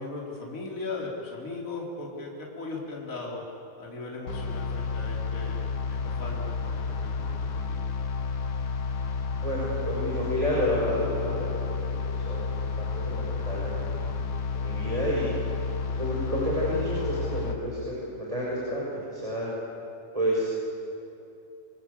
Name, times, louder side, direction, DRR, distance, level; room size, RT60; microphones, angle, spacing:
voice 1, 0.0-3.4 3.8-7.3 7.7-7.8, left 3 dB, 20° left, -2 dB, 4.4 m, -38 dB
sound 1, 4.3-17.6, left 4 dB, 55° left, 1.4 m, -31 dB
voice 2, 9.4-12.0 12.3-13.9 14.5-15.3 16.0-19.5 20.1-20.5, equal, 10° right, -6 dB, 6.1 m, -30 dB
28.5 x 23.5 x 8.5 m, 2.8 s
omnidirectional pair, 4.4 m